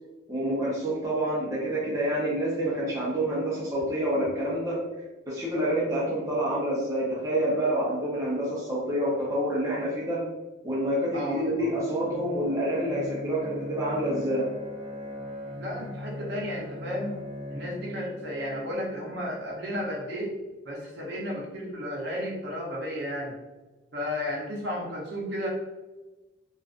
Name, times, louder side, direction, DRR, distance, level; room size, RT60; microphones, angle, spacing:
voice 1, 0.3-4.8 5.3-10.2 10.6-14.5, right 1 dB, 15° right, -7 dB, 0.6 m, -27 dB
voice 2, 11.1-11.7 15.6-17.2 17.5-20.4 20.6-23.3 23.9-25.5, equal, 60° right, -3 dB, 0.7 m, -33 dB
Bowed string instrument, 11.6-19.4, left 1 dB, 30° left, 0.5 m, -40 dB
2.4 x 2.3 x 2.4 m, 1.1 s
head